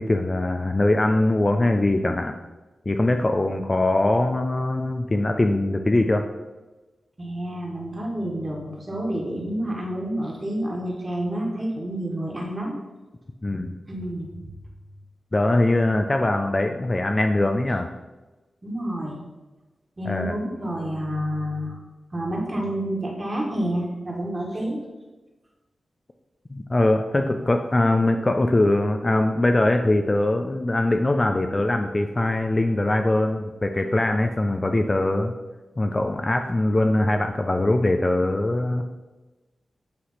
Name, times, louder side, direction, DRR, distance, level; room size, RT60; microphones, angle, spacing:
voice 1, 0.0-2.3 2.9-6.3 13.4-13.8 15.3-17.9 20.1-20.4 26.5-35.3 35.8-38.8, left 2 dB, 25° left, 5 dB, 0.4 m, -22 dB
voice 2, 7.2-12.7 13.9-14.5 18.6-19.2 20.0-21.8 22.1-24.8 27.2-27.3, right 1 dB, 25° right, -2 dB, 1.8 m, -29 dB
8.6 x 3.2 x 5.7 m, 1.2 s
wide cardioid pair, 120°, 0 cm